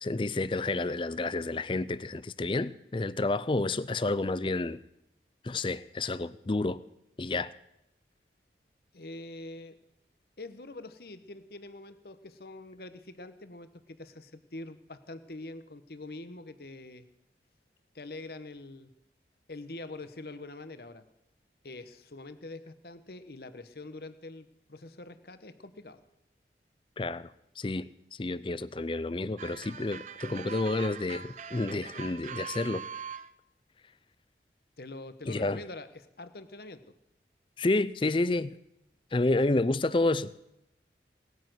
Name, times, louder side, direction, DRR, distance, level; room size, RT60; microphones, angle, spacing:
voice 1, 0.0-4.8 5.4-6.8 7.2-7.5 27.0-27.3 27.6-27.9 28.2-32.8 35.3-35.6 37.6-38.6 39.1-40.3, left 2 dB, 30° left, 0.5 m, -30 dB
voice 2, 8.9-9.8 10.4-17.1 17.9-18.9 19.5-21.0 21.6-26.0 34.8-36.8, left 2 dB, 60° left, 1.1 m, -44 dB
sound 1, 29.4-33.3, right 7 dB, 45° right, 0.6 m, -42 dB
18.5 x 9.4 x 7.8 m
head